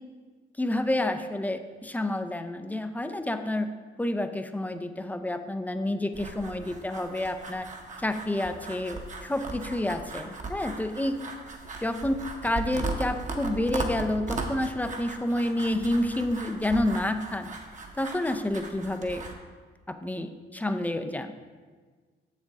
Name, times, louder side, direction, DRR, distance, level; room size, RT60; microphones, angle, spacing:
voice 1, 0.6-3.7 4.0-7.7 8.0-11.1 11.8-12.2 12.4-17.5 18.0-19.2 19.9-21.3, left 1 dB, 10° left, 8 dB, 0.4 m, -29 dB
sound 1, 6.1-19.3, right 3 dB, 40° right, 1.0 m, -38 dB
7.1 x 6.5 x 3.6 m, 1.5 s
cardioid pair, 90°, 20 cm